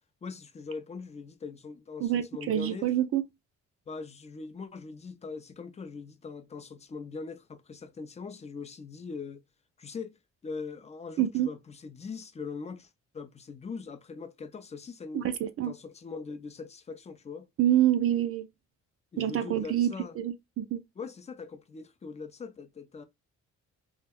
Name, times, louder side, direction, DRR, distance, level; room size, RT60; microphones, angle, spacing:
voice 1, 0.2-2.9 3.9-9.4 9.8-10.2 10.4-15.3 15.6-17.5 19.1-20.2 21.0-23.0, left 4 dB, 25° left, 0.4 m, -41 dB
voice 2, 2.0-3.2 11.2-11.5 15.1-15.7 17.6-18.5 19.2-20.8, right 11 dB, 50° right, 0.4 m, -27 dB
2.2 x 2.1 x 3.4 m
cardioid pair, 90°, 30 cm